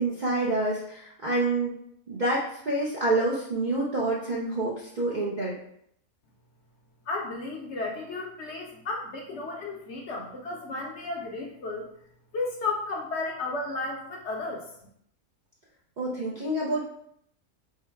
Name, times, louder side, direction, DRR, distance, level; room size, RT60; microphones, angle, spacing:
voice 1, 0.0-1.8 2.1-5.5 16.0-16.8, right 2 dB, 55° right, -5 dB, 0.5 m, -27 dB
voice 2, 7.1-11.9 12.3-14.6, left 3 dB, 60° left, 0 dB, 0.8 m, -33 dB
3.8 x 2.1 x 4.4 m, 0.70 s
omnidirectional pair, 1.5 m